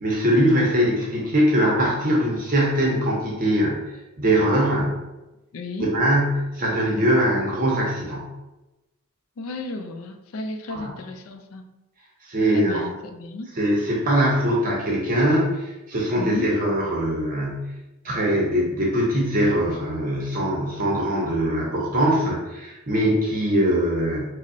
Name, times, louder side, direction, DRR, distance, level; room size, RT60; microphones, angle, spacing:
voice 1, 0.0-3.8 4.2-5.0 5.8-8.3 10.7-10.9 12.2-12.8 13.6-17.7 18.0-24.3, equal, 40° right, -3 dB, 0.7 m, -22 dB
voice 2, 5.5-6.0 9.4-11.7 12.5-13.5 16.2-16.5, left 2 dB, 70° left, 6 dB, 0.4 m, -33 dB
5.1 x 2.1 x 2.6 m, 1.0 s
head